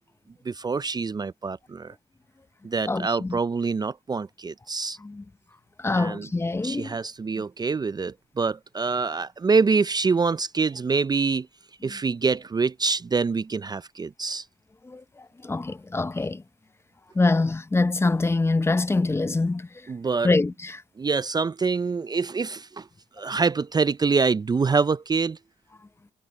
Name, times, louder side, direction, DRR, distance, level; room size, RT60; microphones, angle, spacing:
voice 1, 0.5-1.9 2.6-5.0 5.9-6.3 6.6-11.5 11.8-14.4 19.9-20.3 21.0-22.9 23.2-25.4, right 4 dB, 25° right, 0.5 m, -25 dB
voice 2, 2.9-3.4 5.0-5.2 5.8-7.0 11.8-12.0 14.8-15.0 15.4-16.4 17.1-19.7 20.2-20.8, left 3 dB, 15° left, 0.7 m, -24 dB
supercardioid pair, 75°, 16 cm